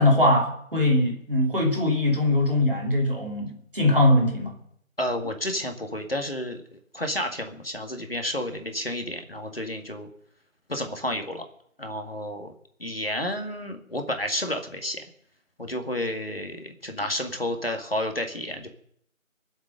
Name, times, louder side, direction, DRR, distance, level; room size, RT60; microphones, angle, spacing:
voice 1, 0.0-4.6, left 1 dB, 40° right, -1 dB, 3.5 m, -21 dB
voice 2, 5.0-6.6 6.9-10.1 10.7-11.4 11.8-12.5 12.8-15.0 15.6-18.7, left 1 dB, 45° left, 4 dB, 2.1 m, -31 dB
21.0 x 7.5 x 6.6 m, 0.68 s
figure-of-eight pair, 180°, 40 cm